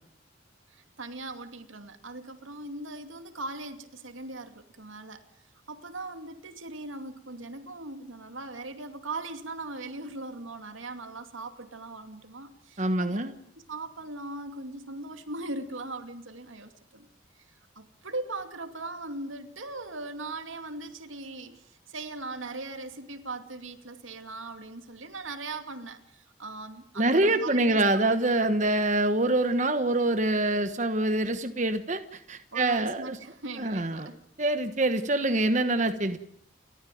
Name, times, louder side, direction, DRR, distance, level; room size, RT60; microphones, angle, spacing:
voice 1, 0.7-5.2 5.7-13.2 13.5-17.1 17.8-27.8 32.5-34.3, right 2 dB, 85° right, 7 dB, 2.5 m, -39 dB
voice 2, 12.8-13.3 27.0-33.2 33.6-34.1 34.4-36.2, right 2 dB, 35° right, 8 dB, 1.3 m, -25 dB
29.5 x 14.0 x 9.3 m, 0.72 s
head